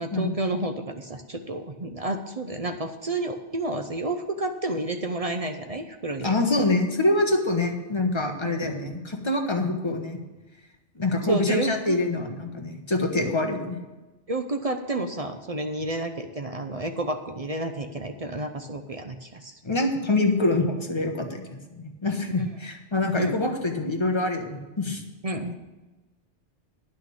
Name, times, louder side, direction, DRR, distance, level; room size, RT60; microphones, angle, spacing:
voice 1, 0.0-6.3 8.4-8.7 11.2-12.0 13.2-13.4 14.3-19.6 23.1-23.4 25.2-25.6, right 2 dB, 40° right, 6 dB, 0.6 m, -30 dB
voice 2, 6.2-10.2 10.9-13.8 19.6-25.0, left 2 dB, 25° left, 3 dB, 1.2 m, -25 dB
10.0 x 6.1 x 8.5 m, 1.1 s
omnidirectional pair, 1.2 m